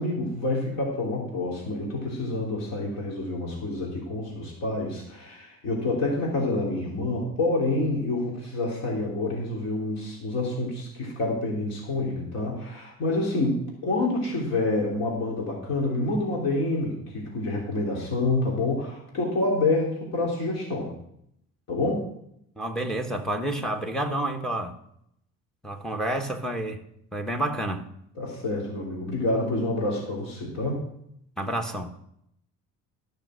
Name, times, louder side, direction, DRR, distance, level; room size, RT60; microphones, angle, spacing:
voice 1, 0.0-20.9 21.7-22.0 28.2-30.8, left 2 dB, 55° left, 3.4 m, -28 dB
voice 2, 22.6-24.8 25.6-26.8 27.1-27.9 31.4-32.0, right 1 dB, ahead, 1.1 m, -29 dB
13.5 x 6.5 x 6.3 m
cardioid pair, 145°, 31 cm